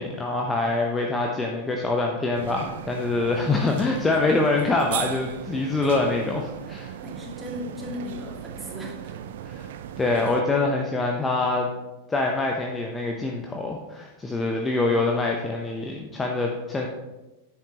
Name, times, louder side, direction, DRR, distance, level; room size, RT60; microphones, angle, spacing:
voice 1, 0.0-6.9 9.4-9.7 10.0-11.7 12.1-16.9, left 3 dB, 15° left, 1 dB, 0.8 m, -25 dB
sound 1, 2.3-10.4, right 10 dB, 55° right, 0.4 m, -37 dB
voice 2, 7.0-9.2, left 1 dB, 10° right, -2 dB, 2.3 m, -36 dB
10.5 x 7.9 x 3.0 m, 1.1 s
figure-of-eight pair, 90°, 0 cm